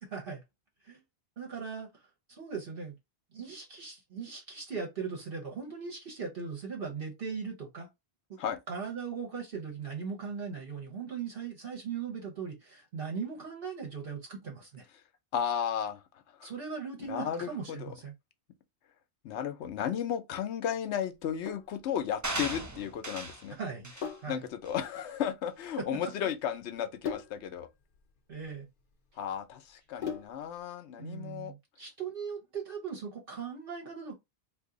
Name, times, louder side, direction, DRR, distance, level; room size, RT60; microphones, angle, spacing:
voice 1, 0.0-0.4 0.8-1.0 1.4-2.0 2.3-3.0 3.3-7.9 8.7-14.9 16.4-18.1 23.6-23.9 24.2-24.4 25.8-26.1 28.3-28.7 31.0-34.1, right 5 dB, 55° right, 1.1 m, -39 dB
voice 2, 15.3-16.0 16.4-16.5 17.0-17.9 19.2-23.6 24.3-27.7 29.2-31.5, left 9 dB, 85° left, 0.9 m, -34 dB
Sink (filling or washing), 21.1-30.6, left 7 dB, 55° left, 0.8 m, -43 dB
sound 1, 22.2-23.5 23.8-24.1 24.7-24.8, right 2 dB, 25° right, 0.5 m, -37 dB
2.8 x 2.6 x 3.7 m
omnidirectional pair, 1.1 m